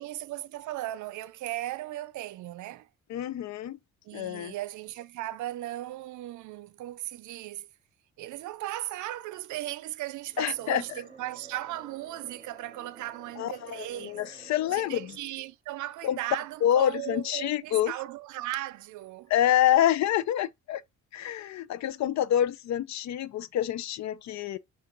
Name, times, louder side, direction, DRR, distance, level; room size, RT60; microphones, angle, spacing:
voice 1, 0.0-2.9 4.0-7.7 8.2-14.2 14.7-19.3, right 15 dB, 75° right, 0.5 m, -37 dB
voice 2, 3.1-3.8 4.1-4.5 10.4-10.8 13.4-15.2 16.0-16.2 16.6-17.9 19.3-20.8 21.1-24.6, left 11 dB, 65° left, 0.5 m, -27 dB
sound 1, 10.1-15.5, right 5 dB, 20° right, 2.6 m, -52 dB
5.8 x 2.4 x 3.8 m
cardioid pair, 90°, 30 cm